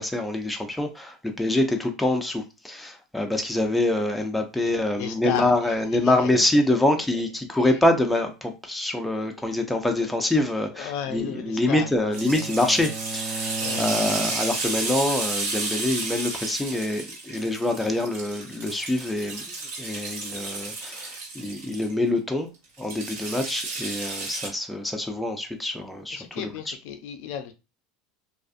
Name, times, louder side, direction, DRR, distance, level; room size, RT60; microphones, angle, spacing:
voice 1, 0.0-19.4 19.8-22.5 22.8-26.7, left 1 dB, 5° left, 0.4 m, -25 dB
voice 2, 5.0-5.5 6.0-6.9 7.6-7.7 10.0-10.1 10.7-11.9 13.6-13.9 26.1-27.5, left 9 dB, 70° left, 0.4 m, -34 dB
Bowed string instrument, 10.8-14.8, right 3 dB, 45° right, 0.5 m, -37 dB
sound 1, 12.1-21.9 22.8-24.5, right 3 dB, 85° right, 1.4 m, -32 dB
2.4 x 2.4 x 2.4 m
supercardioid pair, 120°, 0 cm